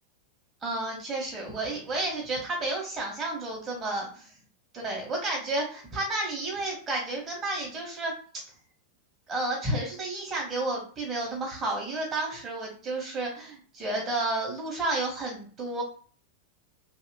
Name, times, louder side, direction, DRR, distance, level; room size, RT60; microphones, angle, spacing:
voice 1, 0.6-4.1 4.7-8.4 9.3-15.8, right 2 dB, 25° right, -2 dB, 1.1 m, -31 dB
2.8 x 2.7 x 2.7 m, 0.43 s
figure-of-eight pair, 90°, 0 cm